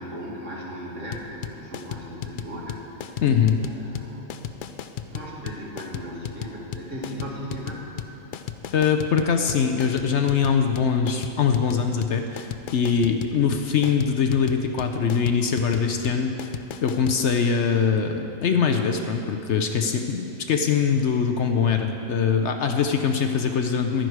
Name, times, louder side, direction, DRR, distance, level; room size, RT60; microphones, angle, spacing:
voice 1, 0.0-3.2 3.6-4.3 5.1-7.9, equal, 65° right, -4 dB, 2.4 m, -37 dB
sound 1, 1.1-17.2, left 9 dB, 85° left, 0.4 m, -35 dB
voice 2, 3.2-3.6 8.7-16.3 16.8-24.1, left 6 dB, 65° left, 5 dB, 0.9 m, -22 dB
11.5 x 10.5 x 4.6 m, 2.8 s
omnidirectional pair, 1.4 m